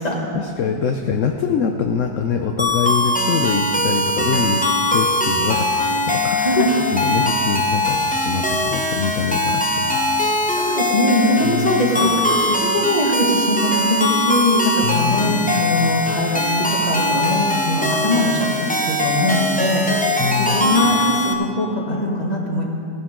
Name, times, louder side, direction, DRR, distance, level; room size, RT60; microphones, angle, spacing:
voice 1, 0.3-9.9 11.4-12.0 14.8-15.4 20.2-20.6, left 6 dB, 60° left, 5 dB, 0.9 m, -24 dB
sound 1, 2.6-21.3, left 1 dB, 5° left, 0.6 m, -21 dB
voice 2, 6.4-6.7 10.5-22.6, left 1 dB, 25° left, -2 dB, 1.8 m, -21 dB
17.5 x 10.5 x 3.8 m, 2.5 s
omnidirectional pair, 1.7 m